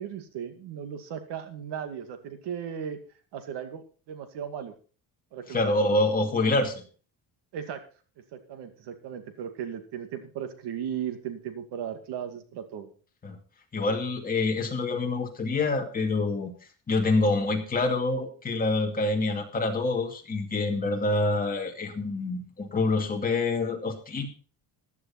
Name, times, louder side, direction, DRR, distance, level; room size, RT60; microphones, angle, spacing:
voice 1, 0.0-3.0 3.3-4.7 5.3-5.7 7.5-7.8 8.3-12.9, right 8 dB, 75° right, 8 dB, 2.3 m, -36 dB
voice 2, 5.5-6.7 13.2-13.4 13.7-16.5 16.9-24.3, left 2 dB, 20° left, 2 dB, 2.3 m, -26 dB
15.0 x 11.0 x 4.3 m, 0.38 s
cardioid pair, 170°, 41 cm